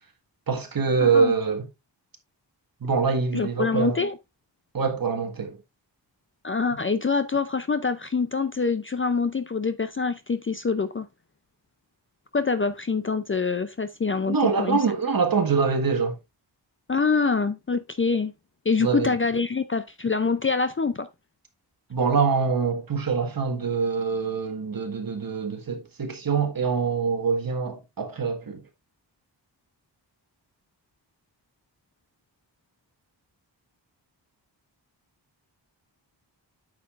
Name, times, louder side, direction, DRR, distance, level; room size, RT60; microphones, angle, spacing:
voice 1, 0.5-1.7 2.8-4.0 4.7-5.6 14.3-16.2 18.8-19.1 21.9-28.6, right 5 dB, 50° right, 1.7 m, -24 dB
voice 2, 1.0-1.3 3.3-4.2 6.4-11.1 12.3-14.8 16.9-18.3 18.7-21.1, left 4 dB, 30° left, 0.5 m, -25 dB
9.2 x 6.6 x 2.5 m
wide cardioid pair, 145°, 44 cm